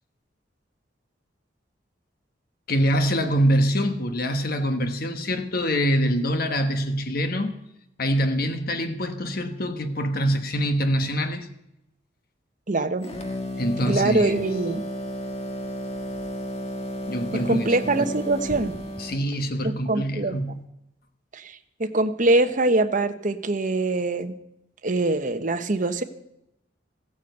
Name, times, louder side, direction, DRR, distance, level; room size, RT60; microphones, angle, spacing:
voice 1, 2.7-7.6 8.0-11.5 13.6-14.4 17.1-18.0 19.0-20.7, equal, 55° left, 1.2 m, -25 dB
voice 2, 12.7-13.1 13.9-14.8 17.3-18.7 19.6-20.4 21.3-24.3 24.8-26.0, right 2 dB, 45° right, 1.0 m, -23 dB
sound 1, 13.0-19.2, equal, 35° left, 1.6 m, -33 dB
15.5 x 9.1 x 8.0 m
head